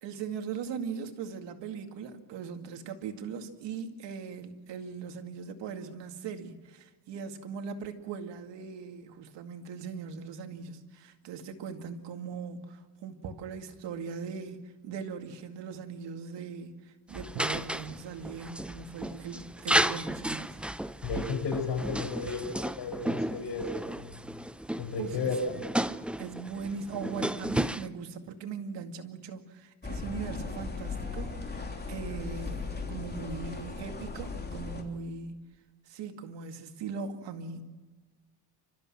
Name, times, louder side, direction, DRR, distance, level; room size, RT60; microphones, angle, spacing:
voice 1, 0.0-20.6 25.0-25.2 25.5-25.6 26.2-35.4 35.9-37.6, right 5 dB, 85° right, 5 dB, 2.3 m, -40 dB
sound 1, 17.1-27.9, right 1 dB, 5° right, 0.6 m, -33 dB
voice 2, 21.0-24.2 24.8-25.5, left 4 dB, 75° left, 4 dB, 6.5 m, -33 dB
sound 2, 29.8-34.8, left 4 dB, 25° left, 3.3 m, -37 dB
29.5 x 14.0 x 7.6 m, 1.3 s
cardioid pair, 100°, 42 cm